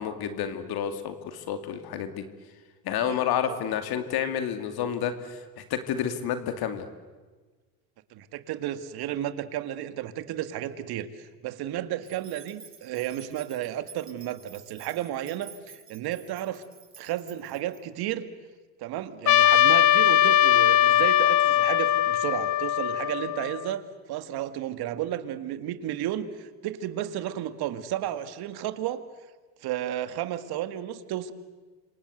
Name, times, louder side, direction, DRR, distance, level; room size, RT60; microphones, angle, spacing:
voice 1, 0.0-2.2 2.8-6.9, left 9 dB, 60° left, 8 dB, 2.6 m, -30 dB
voice 2, 8.1-16.6 17.0-18.3 18.8-23.8 24.1-29.0 29.6-31.3, right 12 dB, 60° right, 11 dB, 2.1 m, -33 dB
sound 1, 12.0-17.8, right 6 dB, 30° right, 7.5 m, -51 dB
Trumpet, 19.3-23.7, left 12 dB, 40° left, 1.1 m, -21 dB
28.0 x 25.5 x 8.0 m, 1.3 s
supercardioid pair, 85°, 42 cm